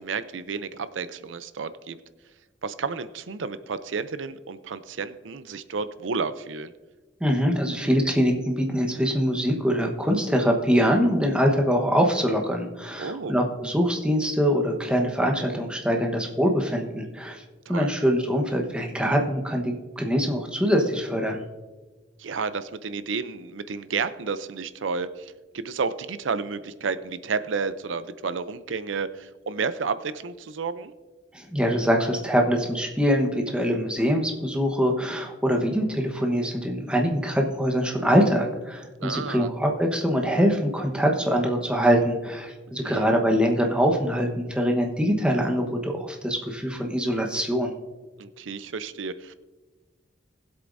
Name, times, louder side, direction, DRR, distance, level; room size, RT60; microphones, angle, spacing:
voice 1, 0.0-2.0 2.6-6.7 13.0-13.4 17.7-17.9 22.2-30.9 39.0-39.5 42.8-43.1 48.2-49.3, right 5 dB, 85° right, 13 dB, 0.5 m, -31 dB
voice 2, 7.2-17.4 17.7-21.4 31.3-47.7, equal, 5° right, 2 dB, 1.1 m, -23 dB
20.0 x 8.1 x 2.6 m, 1.3 s
head